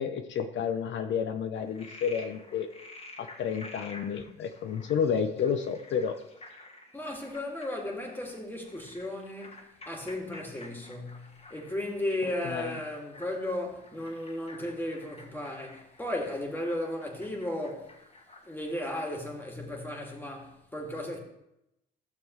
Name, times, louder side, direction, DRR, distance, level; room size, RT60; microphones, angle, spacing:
voice 1, 0.0-2.7 3.2-6.1 12.4-12.8, left 7 dB, 70° left, 0.7 m, -30 dB
Frog, 1.5-19.0, left 2 dB, 30° left, 1.6 m, -51 dB
voice 2, 6.9-18.0 18.4-21.2, left 1 dB, 10° left, 2.2 m, -35 dB
13.0 x 7.0 x 3.1 m
cardioid pair, 90°, 20 cm